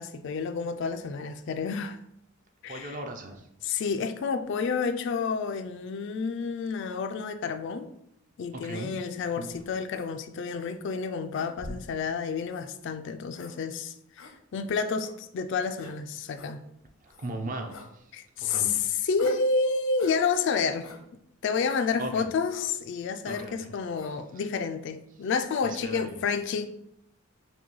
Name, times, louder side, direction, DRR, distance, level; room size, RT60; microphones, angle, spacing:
voice 1, 0.0-2.0 2.6-3.0 3.6-7.9 8.4-16.6 18.1-20.9 21.4-26.7, left 5 dB, 55° left, 0.3 m, -30 dB
voice 2, 2.7-3.5 8.5-8.9 9.4-9.5 11.7-11.8 17.0-18.1 18.4-18.9 22.0-22.3 23.2-23.7 25.6-26.2, right 2 dB, 40° right, 0.5 m, -38 dB
sound 1, 9.9-10.1 10.6-10.7 11.3-11.9 12.5-12.7 13.3-13.5 14.2-14.3 15.0-15.2 15.8-15.9 16.3-16.5 17.1-17.3 17.7-17.9 18.5-18.7 19.2-19.5 20.0-20.2 20.8-21.0 21.7-21.9 22.5-22.7 23.2-23.5 23.9-24.2, left 3 dB, 85° left, 0.7 m, -44 dB
5.9 x 2.2 x 3.1 m
head